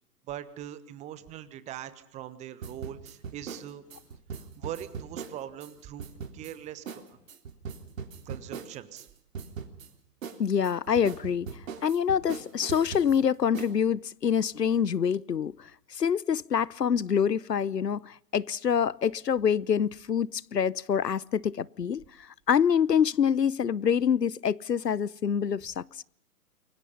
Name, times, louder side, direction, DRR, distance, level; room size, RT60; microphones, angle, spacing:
voice 1, 0.3-3.8 4.4-6.1 6.3-7.2 8.2-9.1, right 11 dB, 15° right, 1.2 m, -41 dB
sound 1, 2.6-5.7 6.0-6.5 6.9-7.0 7.3-9.1 9.3-9.9 10.2-13.2 13.5-13.7, right 6 dB, 55° right, 3.7 m, -40 dB
voice 2, 10.4-26.0, left 7 dB, 85° left, 0.8 m, -26 dB
29.0 x 23.0 x 5.4 m
figure-of-eight pair, 130°, 48 cm